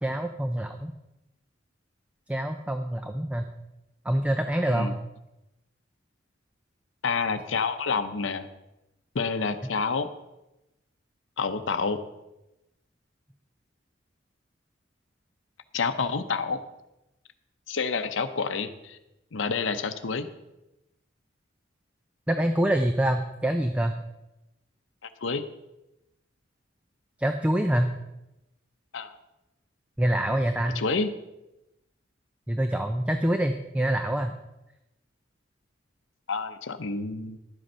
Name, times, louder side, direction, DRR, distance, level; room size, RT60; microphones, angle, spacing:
voice 1, 0.0-0.9 2.3-3.5 4.0-4.9 22.3-23.9 27.2-27.9 30.0-30.8 32.5-34.3, right 1 dB, 5° right, 6 dB, 0.5 m, -25 dB
voice 2, 7.0-8.5 9.1-10.1 11.4-12.0 15.7-16.6 17.7-19.0 19.3-20.3 25.0-25.4 28.9-29.1 30.7-31.1 36.3-37.4, left 4 dB, 80° left, 8 dB, 0.7 m, -28 dB
11.5 x 7.9 x 5.5 m, 0.94 s
head